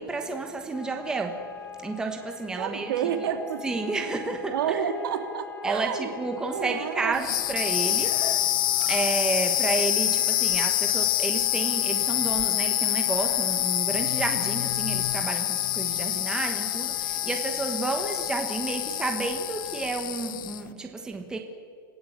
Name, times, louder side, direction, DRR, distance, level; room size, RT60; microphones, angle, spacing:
voice 1, 0.0-1.4 1.8-2.9 3.6-4.9 5.6-21.4, right 3 dB, 5° right, 4 dB, 1.3 m, -31 dB
sound 1, 0.7-19.9, left 8 dB, 25° left, 2.6 m, -43 dB
voice 2, 2.6-3.6 4.5-6.1 6.5-7.2, right 8 dB, 75° right, 6 dB, 3.0 m, -29 dB
sound 2, 7.1-20.7, left 13 dB, 65° left, 0.9 m, -26 dB
26.5 x 16.0 x 8.2 m, 2.1 s
supercardioid pair, 175°, 12 cm